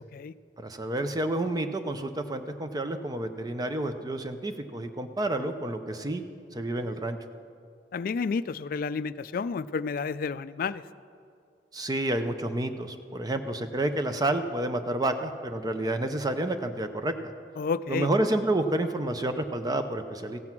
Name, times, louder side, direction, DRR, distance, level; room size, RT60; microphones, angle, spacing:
voice 1, 0.6-6.2 6.5-7.2 11.7-17.1 17.9-20.4, right 1 dB, 20° right, 8 dB, 0.5 m, -29 dB
voice 2, 7.9-10.8 17.6-18.1, left 5 dB, 55° left, 15 dB, 0.3 m, -30 dB
16.0 x 7.7 x 5.9 m, 2.3 s
head